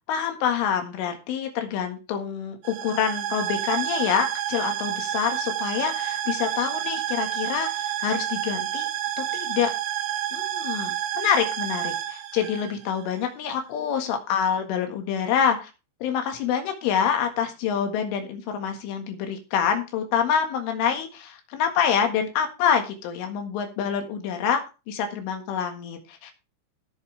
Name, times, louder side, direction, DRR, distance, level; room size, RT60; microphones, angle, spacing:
voice 1, 0.1-8.9 9.2-9.7 10.3-15.7 16.0-26.3, left 8 dB, 75° left, 5 dB, 4.1 m, -26 dB
sound 1, 2.6-13.2, right 12 dB, 85° right, 4.1 m, -29 dB
17.0 x 7.5 x 3.3 m, 0.30 s
omnidirectional pair, 5.8 m